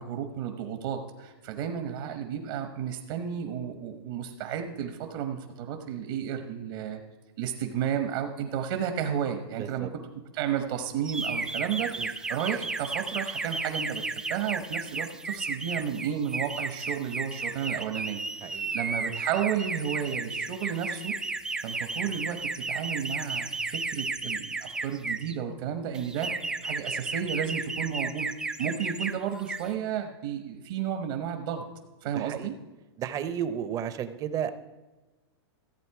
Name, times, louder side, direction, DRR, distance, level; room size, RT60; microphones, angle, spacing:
voice 1, 0.0-7.0 7.4-9.9 10.3-21.1 21.6-28.3 28.6-31.6 32.0-32.6, right 8 dB, 55° right, 6 dB, 1.2 m, -32 dB
voice 2, 9.6-9.9 12.0-12.1 18.4-18.8 32.1-32.5 33.0-34.5, right 9 dB, 25° right, 12 dB, 0.7 m, -33 dB
sound 1, 11.1-25.3 25.9-29.1 29.4-29.7, right 3 dB, 5° right, 0.3 m, -33 dB
14.5 x 8.0 x 4.8 m, 1.2 s
supercardioid pair, 150°, 14 cm